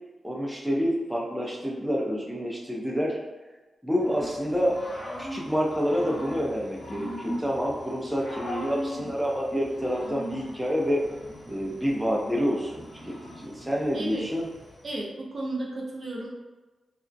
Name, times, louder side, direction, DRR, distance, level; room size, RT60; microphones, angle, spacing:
voice 1, 0.2-3.2 3.8-4.8 5.2-11.0 11.5-14.4, equal, 5° right, -3 dB, 0.6 m, -28 dB
Growling / Cricket, 4.0-14.9, equal, 40° left, 0.8 m, -40 dB
voice 2, 13.9-14.3 14.8-16.3, right 2 dB, 55° right, -3 dB, 0.6 m, -33 dB
2.4 x 2.0 x 2.6 m, 1.2 s
cardioid pair, 55°, 0 cm